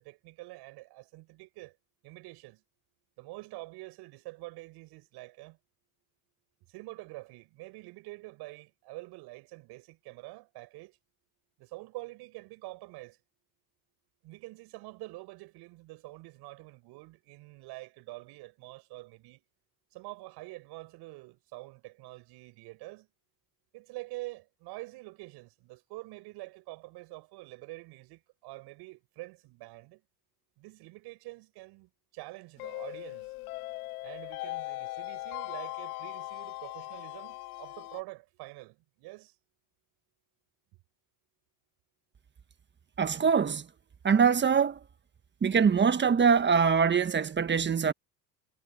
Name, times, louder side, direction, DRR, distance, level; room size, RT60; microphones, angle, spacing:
voice 1, 0.0-1.8 2.0-2.6 3.2-5.6 6.7-11.0 11.6-13.2 14.2-19.4 19.9-23.1 23.7-30.0 30.6-33.3 34.0-39.4, right 22 dB, 65° right, 5.9 m, -46 dB
sound 1, 32.6-38.0, left 20 dB, 80° left, 2.1 m, -39 dB
voice 2, 43.0-43.7 44.0-44.8 45.4-47.9, right 6 dB, 25° right, 1.4 m, -23 dB
supercardioid pair, 90°, 43 cm